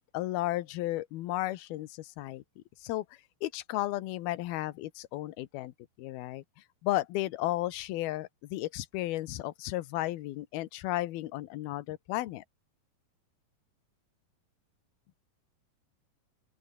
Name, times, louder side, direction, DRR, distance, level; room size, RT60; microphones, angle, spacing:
voice 1, 0.0-2.4 2.8-3.1 3.4-5.7 6.0-6.4 6.8-12.4, left 16 dB, 75° left, 2.9 m, -34 dB
open air
omnidirectional pair, 4.5 m